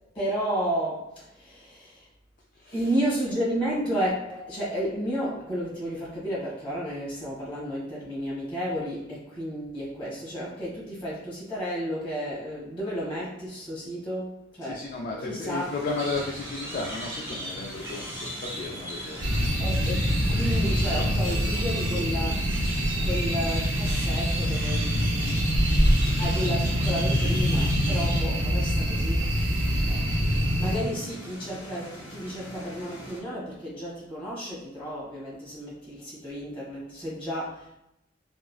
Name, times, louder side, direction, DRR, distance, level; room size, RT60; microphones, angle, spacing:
voice 1, 0.1-2.1 2.7-14.8 15.2-15.7 19.6-22.4 23.0-25.6 26.2-29.3 29.9-30.1 30.3-37.8, equal, 30° left, -6 dB, 1.5 m, -32 dB
voice 2, 2.5-3.0 14.6-19.2 19.6-20.2 20.9-21.6 30.8-30.9, left 3 dB, 50° left, -1 dB, 0.3 m, -35 dB
sound 1, 15.4-33.2, equal, 85° left, 1.1 m, -43 dB
sound 2, 16.0-28.2, right 1 dB, 15° right, 0.7 m, -37 dB
sound 3, 19.2-30.8, equal, 85° right, 0.6 m, -25 dB
3.7 x 2.0 x 2.3 m, 0.85 s
head